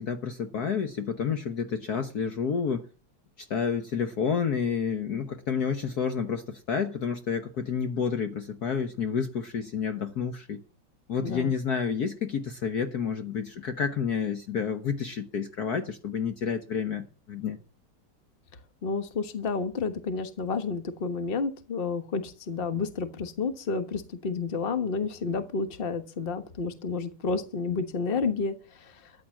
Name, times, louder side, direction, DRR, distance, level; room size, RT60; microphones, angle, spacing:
voice 1, 0.0-2.9 3.4-10.6 11.1-17.6, left 6 dB, 55° left, 1.4 m, -30 dB
voice 2, 11.2-11.5 18.8-28.5, left 4 dB, 30° left, 1.4 m, -30 dB
13.5 x 9.1 x 7.2 m
omnidirectional pair, 2.2 m